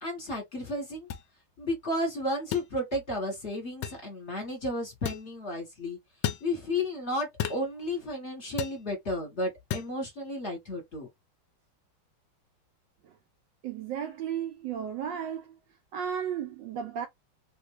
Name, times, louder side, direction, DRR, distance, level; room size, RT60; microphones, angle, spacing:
voice 1, 0.0-1.1 1.6-6.0 6.4-11.1, left 1 dB, 35° left, 1.3 m, -33 dB
sound 1, 1.1-1.3 2.5-2.7 3.8-4.0 5.1-5.3 6.2-6.5 7.4-7.7 8.6-8.8 9.7-9.9, left 10 dB, 70° left, 1.0 m, -33 dB
voice 2, 13.6-15.6 15.9-17.1, right 8 dB, 75° right, 1.1 m, -34 dB
3.4 x 2.5 x 3.1 m
omnidirectional pair, 2.4 m